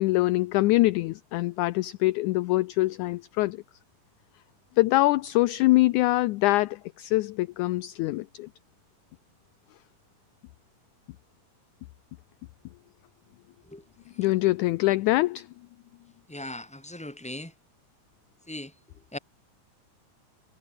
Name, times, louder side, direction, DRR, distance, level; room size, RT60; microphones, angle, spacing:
voice 1, 0.0-3.6 4.8-8.5 14.2-15.5, left 19 dB, 80° left, 1.9 m, -24 dB
voice 2, 16.3-17.5 18.5-18.7 19.1-19.2, left 1 dB, ahead, 3.6 m, -38 dB
omnidirectional pair, 3.9 m